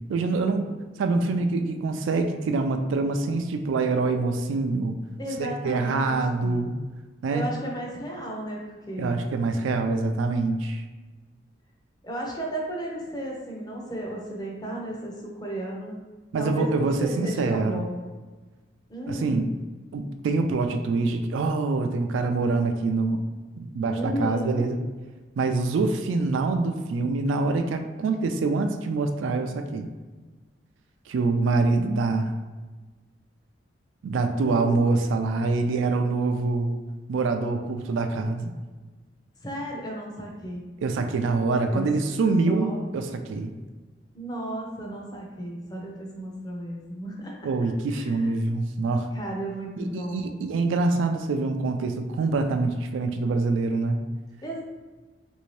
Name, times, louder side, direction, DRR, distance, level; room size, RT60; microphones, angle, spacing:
voice 1, 0.1-4.9 5.4-6.7 7.2-7.5 9.0-10.8 16.3-17.8 19.1-19.4 19.9-23.2 23.6-24.8 25.4-29.9 31.1-32.3 34.0-36.7 37.1-38.5 40.8-43.5 47.4-49.1 49.8-54.0, right 3 dB, 85° right, 6 dB, 0.3 m, -25 dB
voice 2, 5.2-6.6 7.3-9.2 12.0-15.9 16.4-18.0 18.9-19.5 23.9-24.7 34.4-34.9 39.4-40.6 41.7-41.9 42.5-42.9 44.1-47.3 47.9-48.3 49.1-50.3 54.4-54.6, right 1 dB, 20° left, -1 dB, 0.6 m, -34 dB
3.3 x 2.6 x 3.1 m, 1.3 s
head